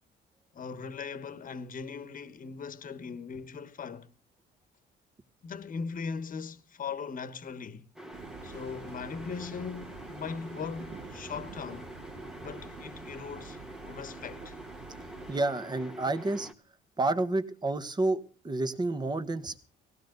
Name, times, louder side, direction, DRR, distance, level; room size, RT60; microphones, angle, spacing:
voice 1, 0.5-4.1 5.4-7.8 8.4-11.9 12.4-13.6 13.8-14.5, left 5 dB, 45° left, 1.3 m, -39 dB
sound 1, 8.0-16.5, right 1 dB, 5° right, 1.2 m, -46 dB
sound 2, 8.1-15.3, right 6 dB, 60° right, 1.9 m, -48 dB
voice 2, 15.3-16.5 17.0-19.6, right 2 dB, 20° right, 1.3 m, -29 dB
19.0 x 15.5 x 4.0 m
cardioid pair, 115°, 20 cm